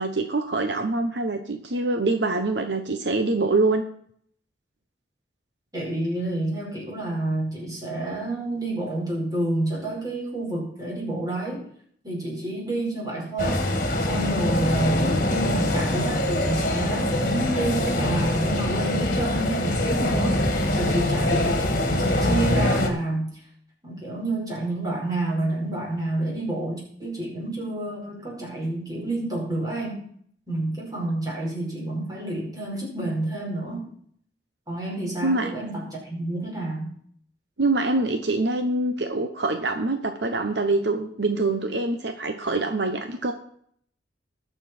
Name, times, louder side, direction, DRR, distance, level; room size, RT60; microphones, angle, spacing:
voice 1, 0.0-3.8 35.2-35.5 37.6-43.3, right 2 dB, 70° right, 6 dB, 1.0 m, -25 dB
voice 2, 5.7-11.7 12.0-13.6 14.0-20.4 20.7-23.3 23.8-30.1 30.5-33.9 34.7-36.9, right 2 dB, 20° right, -3 dB, 4.8 m, -29 dB
sound 1, 13.4-22.9, left 1 dB, 45° left, 2.0 m, -24 dB
20.0 x 7.1 x 4.4 m, 0.62 s
head